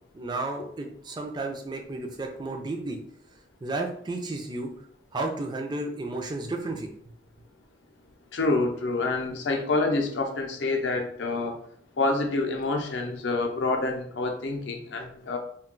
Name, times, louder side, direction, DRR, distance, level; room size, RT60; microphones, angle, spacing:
voice 1, 0.1-3.0 3.6-4.7 5.1-6.9, right 2 dB, 25° right, 2 dB, 0.3 m, -32 dB
voice 2, 8.3-11.5 12.0-15.4, left 3 dB, 70° left, 3 dB, 0.5 m, -27 dB
2.3 x 2.2 x 3.7 m, 0.64 s
head